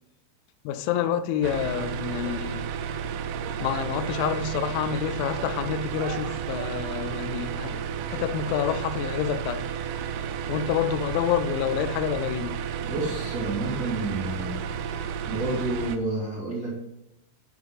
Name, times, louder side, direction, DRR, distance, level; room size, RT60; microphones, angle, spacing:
voice 1, 0.6-2.7 3.6-7.8 8.1-9.6 10.5-12.6, left 9 dB, 85° left, 3.0 m, -28 dB
sound 1, 1.4-16.0, right 8 dB, 80° right, 2.6 m, -32 dB
voice 2, 12.8-14.5 15.2-16.9, right 2 dB, 25° right, 2.5 m, -30 dB
11.5 x 5.5 x 3.4 m
omnidirectional pair, 5.3 m